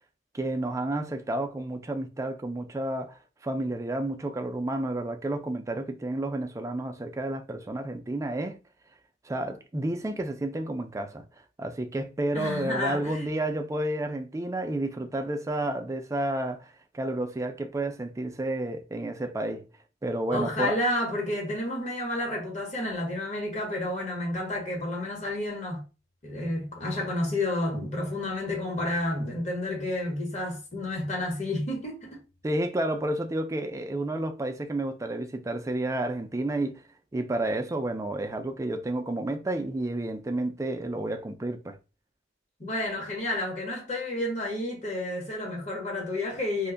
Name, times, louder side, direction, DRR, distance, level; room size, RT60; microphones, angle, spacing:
voice 1, 0.3-8.6 9.2-11.2 11.6-19.7 20.0-20.8 32.4-36.8 37.1-41.8, right 1 dB, 15° right, 0.3 m, -31 dB
voice 2, 12.3-13.2 20.3-25.8 26.2-32.2 42.6-46.7, left 1 dB, 40° left, 1.0 m, -30 dB
2.4 x 2.2 x 3.7 m
head